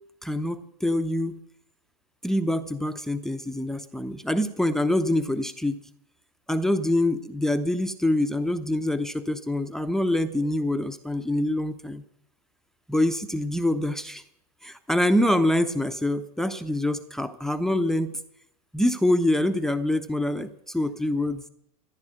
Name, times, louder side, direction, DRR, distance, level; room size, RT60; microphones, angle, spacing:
voice 1, 0.2-1.4 2.2-5.8 6.5-12.0 12.9-14.2 14.6-18.1 18.7-21.4, left 1 dB, ahead, 11 dB, 0.8 m, -25 dB
15.0 x 10.5 x 7.7 m, 0.75 s
figure-of-eight pair, 95°, 21 cm